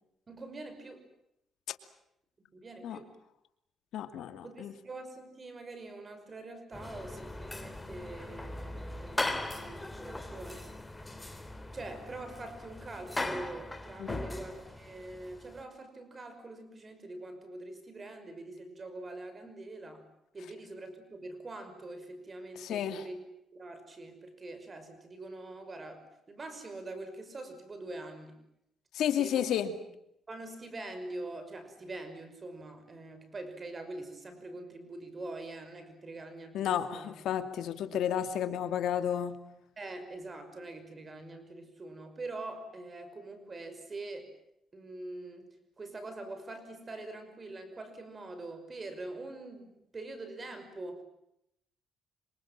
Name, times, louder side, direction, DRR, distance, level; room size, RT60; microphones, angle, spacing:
voice 1, 0.3-1.1 2.4-3.1 4.4-10.7 11.7-20.0 20.3-23.2 23.5-28.4 29.2-29.6 30.3-37.1 39.8-44.3 44.7-45.5 45.8-51.0, right 2 dB, 30° right, 9 dB, 5.9 m, -44 dB
voice 2, 3.9-4.7 14.0-14.2 22.6-23.1 28.9-29.8 36.5-39.4, left 9 dB, 75° left, 9 dB, 2.6 m, -32 dB
sound 1, 6.7-15.6, left 2 dB, 15° left, 3.4 m, -39 dB
28.0 x 26.5 x 7.6 m, 0.79 s
cardioid pair, 90°, 0 cm